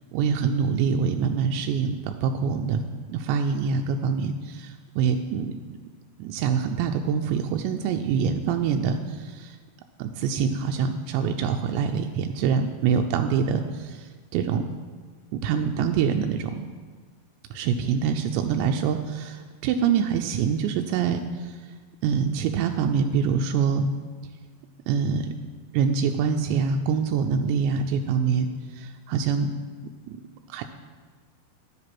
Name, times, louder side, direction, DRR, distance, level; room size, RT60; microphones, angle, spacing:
voice 1, 0.1-2.8 3.1-5.6 6.2-9.6 10.0-14.6 15.3-16.7 17.5-21.6 22.0-23.9 24.9-25.3 25.7-29.5 30.1-30.2 30.5-30.6, right 6 dB, 85° right, 5 dB, 2.8 m, -25 dB
11.0 x 7.5 x 5.9 m, 1.5 s
omnidirectional pair, 5.1 m